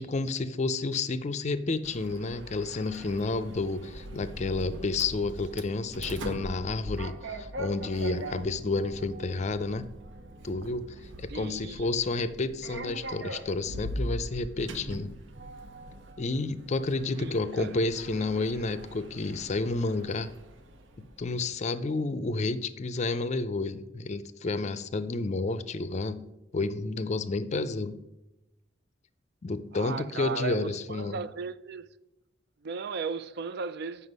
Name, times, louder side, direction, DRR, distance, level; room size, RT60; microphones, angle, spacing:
voice 1, 0.0-9.9 10.4-10.8 11.2-15.2 16.2-20.3 21.0-28.0 29.4-31.2, left 3 dB, 40° left, 0.4 m, -30 dB
Sliding door, 1.8-21.4, right 1 dB, 80° right, 0.8 m, -41 dB
voice 2, 11.3-11.9 17.2-17.8 29.7-31.9 32.6-34.1, right 5 dB, 60° right, 0.4 m, -36 dB
7.9 x 5.7 x 5.3 m
head